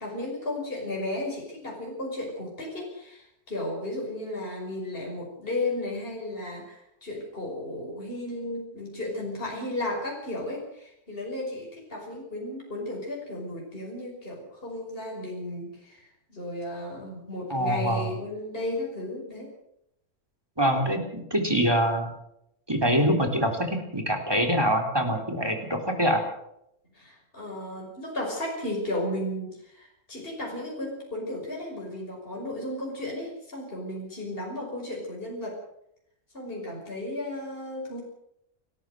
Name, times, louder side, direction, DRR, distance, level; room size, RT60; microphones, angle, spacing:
voice 1, 0.0-19.5 26.9-35.6 36.3-38.0, left 1 dB, 35° left, -2 dB, 6.0 m, -34 dB
voice 2, 17.5-18.1 20.6-22.1 22.7-26.2, equal, 15° right, 5 dB, 3.8 m, -24 dB
29.5 x 13.5 x 6.5 m, 0.77 s
omnidirectional pair, 1.6 m